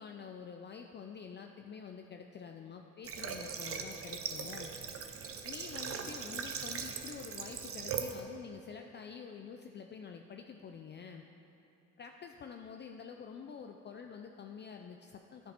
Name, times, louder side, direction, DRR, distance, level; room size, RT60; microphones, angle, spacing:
voice 1, 0.0-4.7 5.4-11.2 12.0-15.5, left 6 dB, 35° left, 4 dB, 0.4 m, -47 dB
Water / Water tap faucet, 3.0-8.2, right 6 dB, 50° right, 0.7 m, -40 dB
10.5 x 5.3 x 4.3 m, 2.8 s
cardioid pair, 90°, 30 cm